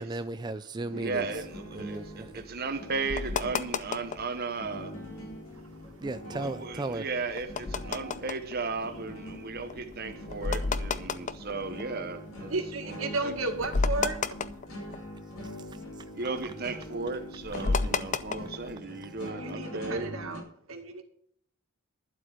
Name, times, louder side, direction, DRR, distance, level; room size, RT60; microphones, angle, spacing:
voice 1, 0.0-1.5 1.7-2.4 6.0-7.1 14.9-16.1 19.0-19.1, right 2 dB, 20° right, 0.4 m, -37 dB
sound 1, 0.9-20.4, equal, 85° left, 3.9 m, -43 dB
voice 2, 0.9-4.9 6.3-12.5 12.8-13.3 16.1-20.4, right 4 dB, 45° right, 1.0 m, -35 dB
sound 2, 1.1-4.4 4.8-5.4 5.8-12.5 12.9-13.0 13.3-15.4 15.7-18.7, left 4 dB, 35° left, 0.6 m, -33 dB
voice 3, 5.3-6.1 9.5-9.6 11.0-11.5 12.5-14.4 19.3-20.4 20.7-21.0, right 3 dB, 80° right, 2.2 m, -35 dB
11.5 x 8.0 x 6.2 m
head